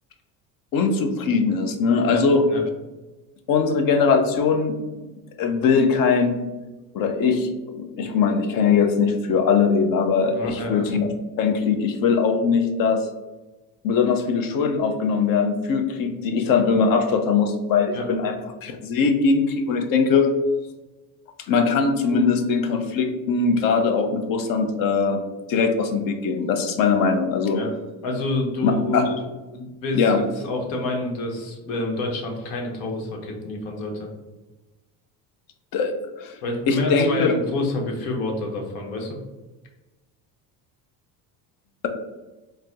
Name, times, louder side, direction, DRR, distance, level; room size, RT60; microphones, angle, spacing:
voice 1, 0.7-2.4 3.5-4.8 5.4-6.4 6.9-11.1 11.4-13.1 13.8-18.3 18.6-20.3 21.5-25.2 25.5-27.6 28.6-29.1 29.9-30.2 35.7-35.9 36.2-36.4 36.7-37.3, left 5 dB, 55° left, 6 dB, 0.7 m, -21 dB
voice 2, 10.3-10.8 17.9-18.1 27.5-27.7 28.0-29.2 29.5-34.1 36.4-39.2, left 2 dB, 75° left, 1 dB, 1.0 m, -28 dB
4.1 x 2.1 x 3.6 m, 1.2 s
supercardioid pair, 100°, 41 cm